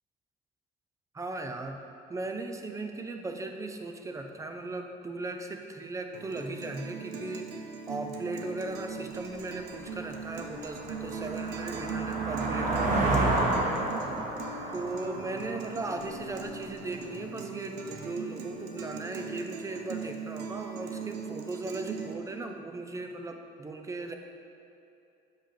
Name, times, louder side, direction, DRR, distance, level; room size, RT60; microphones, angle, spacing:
voice 1, 1.1-1.8 2.1-7.5 7.9-13.4 14.7-24.1, right 2 dB, 20° right, 5 dB, 0.5 m, -37 dB
Guitar, 6.1-22.1, right 5 dB, 90° right, 0.6 m, -40 dB
sound 1, 9.3-9.4 9.9-16.5, right 2 dB, 50° right, 1.1 m, -31 dB
7.3 x 5.4 x 3.4 m, 2.7 s
cardioid pair, 110°, 17 cm